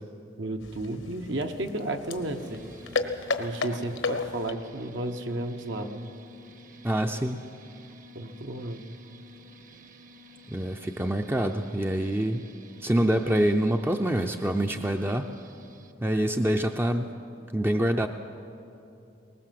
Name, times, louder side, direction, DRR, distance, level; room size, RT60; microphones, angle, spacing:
voice 1, 0.4-2.6 3.4-6.1 8.1-8.9, right 1 dB, 70° right, 5 dB, 1.2 m, -33 dB
sound 1, 0.6-4.7, left 4 dB, 85° left, 1.2 m, -33 dB
sound 2, 2.2-15.9, equal, 45° right, 1.0 m, -51 dB
voice 2, 6.8-7.4 10.5-12.5 12.8-15.3 16.0-17.1 17.5-18.1, right 1 dB, 10° right, 5 dB, 0.5 m, -26 dB
20.5 x 19.5 x 7.6 m, 2.8 s
head